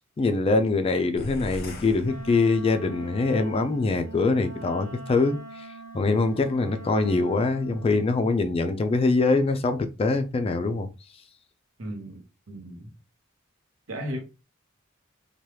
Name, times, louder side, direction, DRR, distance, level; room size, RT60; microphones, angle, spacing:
voice 1, 0.2-5.7 5.9-10.9, left 3 dB, 30° left, 0.3 m, -23 dB
sound 1, 1.2-3.0, left 1 dB, 50° left, 0.7 m, -40 dB
Wind instrument woodwind instrument, 2.0-8.1, right 3 dB, 35° right, 1.1 m, -43 dB
voice 2, 11.8-12.9 13.9-14.2, equal, 75° right, 0.8 m, -35 dB
2.9 x 2.3 x 3.1 m
head